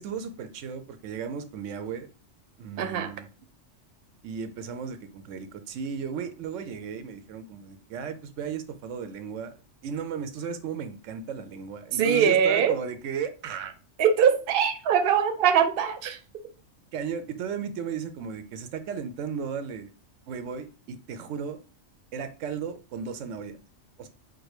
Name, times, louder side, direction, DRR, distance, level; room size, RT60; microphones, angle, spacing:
voice 1, 0.0-2.1 2.6-3.3 4.2-9.6 9.8-13.7 16.9-19.9 20.3-21.6 22.1-23.6 24.0-24.1, right 6 dB, 80° right, 0.9 m, -35 dB
voice 2, 2.8-3.1 11.9-12.8 14.0-16.2, right 7 dB, 55° right, 0.8 m, -22 dB
4.8 x 2.2 x 4.8 m
omnidirectional pair, 1.3 m